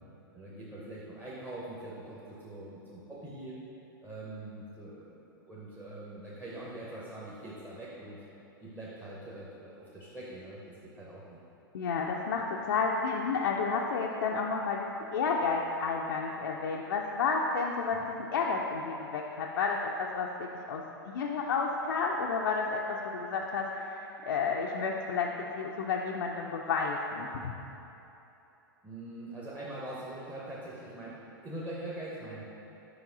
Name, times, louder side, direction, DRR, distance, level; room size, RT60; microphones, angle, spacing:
voice 1, 0.3-3.6 4.0-8.2 8.6-11.4 18.0-18.1 28.8-32.4, right 1 dB, 10° right, -7 dB, 0.8 m, -43 dB
voice 2, 11.7-20.8 21.1-27.5, left 4 dB, 70° left, -1 dB, 0.4 m, -31 dB
5.2 x 4.8 x 3.9 m, 3.0 s
figure-of-eight pair, 100°, 12 cm